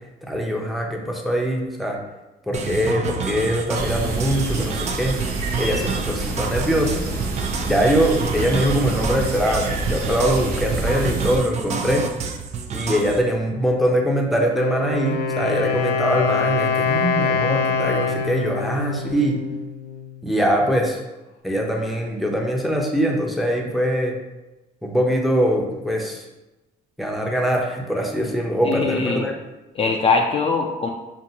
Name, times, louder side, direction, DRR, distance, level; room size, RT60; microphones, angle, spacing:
voice 1, 0.2-2.0 2.5-5.1 5.6-7.0 7.6-12.1 12.7-19.4 20.2-21.0 21.4-24.1 24.8-26.2 27.0-29.3, equal, ahead, 0 dB, 0.6 m, -22 dB
sound 1, 2.5-13.2, right 5 dB, 40° right, 0.4 m, -29 dB
sound 2, 3.7-11.4, right 2 dB, 65° right, 0.8 m, -27 dB
Wind instrument woodwind instrument, 14.4-20.2, left 5 dB, 85° left, 0.5 m, -24 dB
voice 2, 28.6-29.3 29.8-30.9, left 4 dB, 35° left, 1 dB, 0.4 m, -21 dB
5.3 x 2.5 x 2.8 m, 1.0 s
cardioid pair, 110°, 17 cm